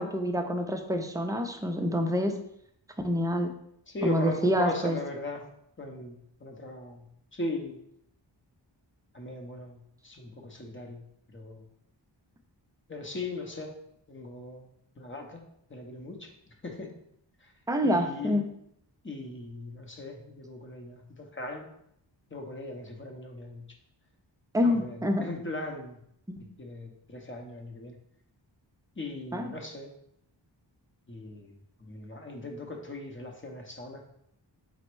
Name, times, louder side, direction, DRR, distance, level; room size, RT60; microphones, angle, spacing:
voice 1, 0.0-2.4 3.0-3.5 4.0-5.0 17.7-18.4 24.5-25.3 26.3-26.4 29.3-29.5, equal, 10° right, 4 dB, 0.4 m, -27 dB
voice 2, 3.9-5.4 5.8-7.1 7.3-7.8 9.1-11.0 11.3-11.6 12.9-13.8 14.1-14.7 15.0-15.4 15.7-16.3 16.6-16.9 17.4-17.5 17.8-18.4 19.0-21.7 22.3-23.6 24.6-25.9 26.4-28.0 29.0-29.9 31.1-34.0, left 2 dB, 25° left, 2 dB, 0.7 m, -39 dB
4.2 x 2.0 x 4.5 m, 0.74 s
wide cardioid pair, 80°, 45 cm